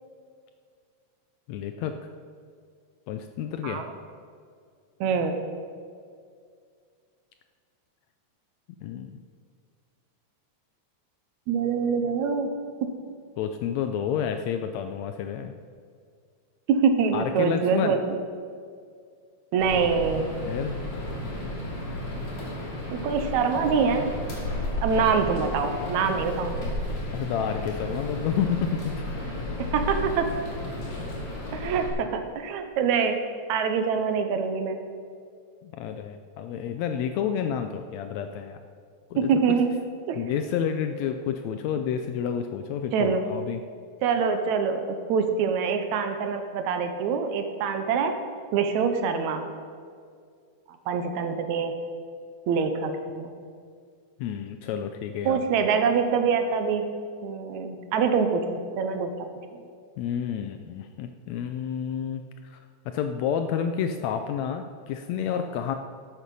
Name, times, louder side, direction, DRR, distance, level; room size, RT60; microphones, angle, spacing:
voice 1, 1.5-2.0 3.1-3.8 8.8-9.1 13.4-15.5 17.1-18.0 20.4-20.8 27.1-29.0 35.6-38.6 39.1-39.6 40.1-43.6 54.2-55.4 60.0-62.6 62.9-65.8, left 8 dB, 80° left, 7 dB, 1.6 m, -30 dB
voice 2, 5.0-5.4 11.5-12.5 16.7-18.2 19.5-20.3 22.9-24.1 24.8-26.8 29.6-30.3 31.5-33.2 33.5-34.8 39.2-39.7 40.1-40.2 42.9-43.2 44.0-48.2 48.5-49.4 50.7-51.7 52.5-53.3 55.3-56.9 57.2-59.1 59.5-59.6, right 6 dB, 75° right, 7 dB, 2.0 m, -25 dB
sound 1, 19.6-31.9, left 1 dB, 65° left, 3.7 m, -33 dB
12.5 x 8.3 x 5.3 m, 2.2 s
omnidirectional pair, 3.5 m